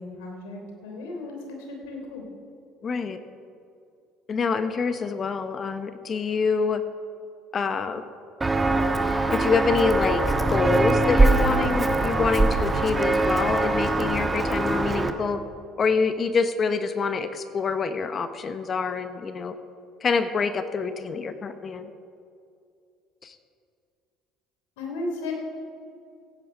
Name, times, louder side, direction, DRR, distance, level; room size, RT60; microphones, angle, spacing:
voice 1, 0.0-2.2 24.8-25.3, left 2 dB, 80° left, 1 dB, 3.2 m, -35 dB
voice 2, 2.8-3.2 4.3-6.8 7.5-8.0 9.3-15.4 15.8-19.5 20.0-21.9 23.2-23.3, left 5 dB, 40° left, 11 dB, 0.9 m, -26 dB
Walk footsteps, 8.4-15.1, right 2 dB, 20° right, 1.3 m, -22 dB
16.0 x 9.4 x 5.5 m, 2.4 s
hypercardioid pair, 70°, 0 cm